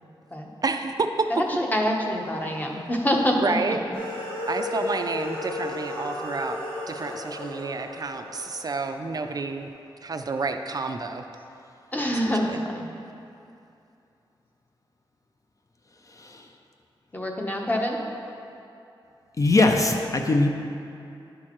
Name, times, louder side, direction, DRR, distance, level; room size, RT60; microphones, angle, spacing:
voice 1, 0.6-1.1 3.4-3.8 4.5-6.6 6.9-9.7 10.0-11.2 12.2-12.6, right 4 dB, 45° right, 6 dB, 0.3 m, -30 dB
voice 2, 1.3-3.5 11.9-12.9 17.1-18.0, equal, 20° left, 0 dB, 0.8 m, -25 dB
sound 1, 3.9-9.4, left 2 dB, 85° left, 1.5 m, -34 dB
voice 3, 19.4-20.5, left 2 dB, 35° left, 3 dB, 0.5 m, -21 dB
10.5 x 6.4 x 3.0 m, 2.7 s
wide cardioid pair, 105°, 9 cm